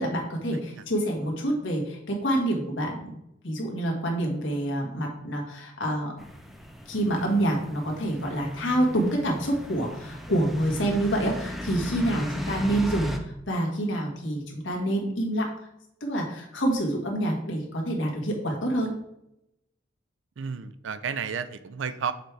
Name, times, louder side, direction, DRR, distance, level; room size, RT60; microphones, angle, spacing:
voice 1, 0.0-3.2 3.4-6.1 6.9-15.7 16.0-18.9, right 1 dB, 70° left, 0 dB, 1.5 m, -27 dB
sound 1, 6.2-13.2, equal, ahead, 0.6 m, -36 dB
voice 2, 20.4-22.1, right 6 dB, 70° right, 12 dB, 0.4 m, -32 dB
6.5 x 4.6 x 3.3 m, 0.83 s
head